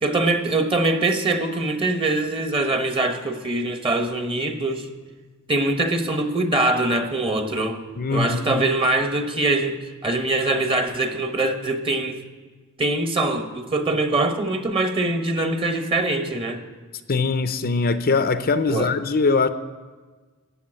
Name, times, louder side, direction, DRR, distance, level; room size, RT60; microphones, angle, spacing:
voice 1, 0.0-4.9 5.5-7.8 8.1-12.2 12.8-16.6 18.7-18.9, right 2 dB, 25° right, 1.2 m, -23 dB
voice 2, 8.0-8.6 17.1-19.5, left 4 dB, 45° left, 0.6 m, -22 dB
14.5 x 8.5 x 8.7 m
head